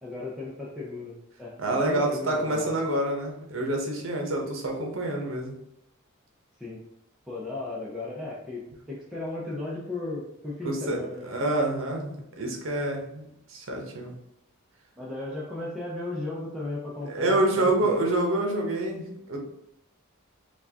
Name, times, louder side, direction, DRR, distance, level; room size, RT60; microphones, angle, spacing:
voice 1, 0.0-2.7 6.6-6.8 7.3-11.3 15.0-18.0, left 2 dB, ahead, -8 dB, 0.6 m, -36 dB
voice 2, 1.6-5.6 10.6-14.1 17.0-19.4, right 1 dB, 65° right, 1 dB, 0.8 m, -27 dB
4.4 x 2.4 x 2.8 m, 0.80 s
head